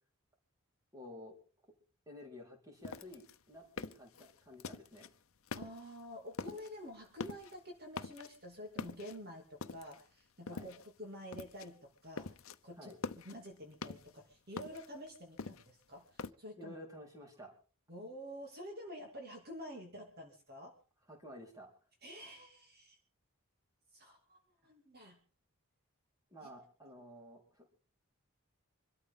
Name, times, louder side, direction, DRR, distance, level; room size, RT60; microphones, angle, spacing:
voice 1, 0.9-1.4 2.1-5.1 10.5-10.7 12.8-13.0 16.6-17.5 21.1-21.7 26.3-27.7, left 1 dB, 15° right, 0 dB, 4.3 m, -52 dB
sound 1, 2.8-5.1 5.5-6.0 6.3-6.8 7.1-7.6 7.9-8.5 8.8-10.1 10.5-11.0 11.3-11.7 12.0-12.6 12.9-14.2 14.6-16.3, left 4 dB, 70° left, 0.8 m, -45 dB
voice 2, 5.5-12.3 12.6-12.9 13.2-16.8 17.9-20.8 22.0-23.0 23.9-24.4 24.6-25.2 26.4-26.5, equal, 45° right, 2 dB, 2.7 m, -49 dB
25.5 x 13.0 x 3.8 m, 0.38 s
head